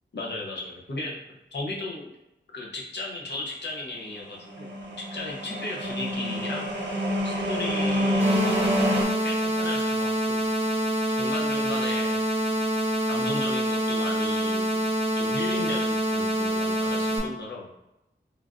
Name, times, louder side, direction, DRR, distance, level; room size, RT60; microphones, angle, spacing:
voice 1, 0.1-1.2 1.5-2.1 2.5-4.7 5.1-6.7 7.2-8.6 9.2-10.4 11.1-12.2 13.1-14.9 15.2-17.7, left 2 dB, 70° left, -2 dB, 0.7 m, -35 dB
sound 1, 4.4-9.0, equal, 75° right, 0.7 m, -27 dB
sound 2, 8.2-17.2, right 1 dB, 30° right, 0.7 m, -26 dB
3.1 x 2.4 x 2.4 m, 0.90 s
wide cardioid pair, 85°, 19 cm